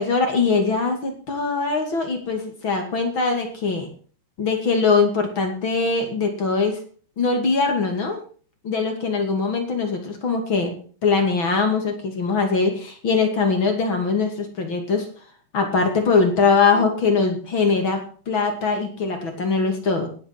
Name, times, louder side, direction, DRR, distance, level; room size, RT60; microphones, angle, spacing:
voice 1, 0.0-3.9 4.4-6.8 7.2-8.2 8.6-10.7 11.0-15.1 15.5-20.1, left 4 dB, 35° left, 4 dB, 2.7 m, -22 dB
18.0 x 7.9 x 6.0 m, 0.42 s
omnidirectional pair, 4.7 m